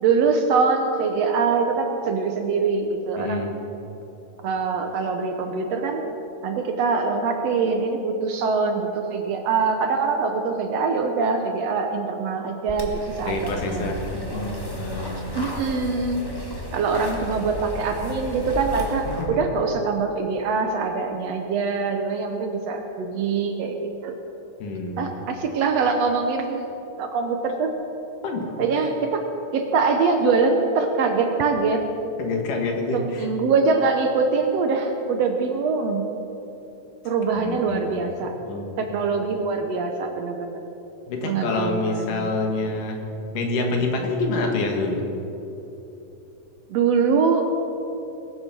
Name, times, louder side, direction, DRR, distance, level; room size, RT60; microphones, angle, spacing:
voice 1, 0.0-3.4 4.4-6.1 6.4-14.0 15.3-16.2 16.7-24.1 25.0-27.7 28.6-29.2 29.5-31.8 32.9-36.1 37.1-38.4 38.8-40.6 41.2-42.3 46.7-47.5, right 4 dB, 70° right, 4 dB, 1.7 m, -23 dB
voice 2, 3.2-3.5 13.2-15.3 19.2-19.4 24.6-25.1 28.2-28.5 28.8-28.9 32.2-33.3 37.3-38.8 41.1-43.0 43.3-45.0, left 3 dB, 85° left, 2 dB, 3.2 m, -27 dB
sound 1, 12.7-19.3, equal, 15° left, 1.0 m, -33 dB
20.5 x 7.9 x 6.0 m, 3.0 s
omnidirectional pair, 3.6 m